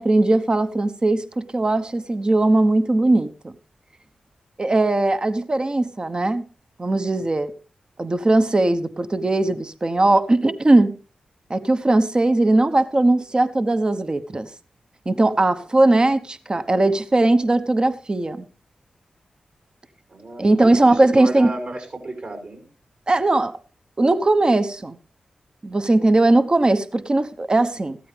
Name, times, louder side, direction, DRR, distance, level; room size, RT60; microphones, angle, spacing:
voice 1, 0.0-3.5 4.6-6.4 6.8-7.5 8.0-11.0 11.5-14.5 15.1-18.4 20.4-21.5 23.1-23.6 24.0-25.0 25.6-28.0, right 2 dB, 35° right, 10 dB, 1.1 m, -19 dB
voice 2, 20.1-22.7, right 2 dB, 60° right, 4 dB, 6.0 m, -33 dB
15.0 x 12.5 x 3.4 m, 0.34 s
supercardioid pair, 40°, 2 cm